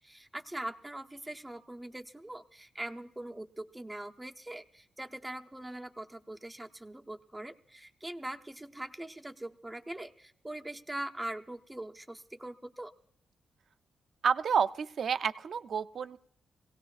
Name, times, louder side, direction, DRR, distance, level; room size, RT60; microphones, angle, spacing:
voice 1, 0.0-12.9, right 1 dB, 10° right, 5 dB, 0.7 m, -42 dB
voice 2, 14.2-16.2, right 6 dB, 55° right, 12 dB, 0.5 m, -29 dB
23.0 x 17.5 x 2.4 m, 0.70 s
wide cardioid pair, 135°, 0 cm